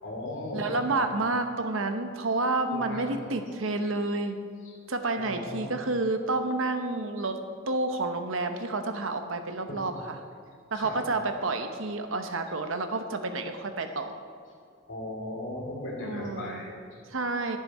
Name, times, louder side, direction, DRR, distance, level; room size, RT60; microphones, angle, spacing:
voice 1, 0.0-1.0 2.7-3.1 4.6-4.7 5.2-5.7 9.7-9.8 10.7-11.0 14.9-17.0, left 1 dB, 70° left, -2 dB, 2.7 m, -37 dB
voice 2, 0.5-4.4 4.9-7.4 7.7-10.2 10.7-14.1 16.0-16.6 17.1-17.6, right 2 dB, 90° right, 7 dB, 0.9 m, -29 dB
11.0 x 10.0 x 4.3 m, 2.3 s
head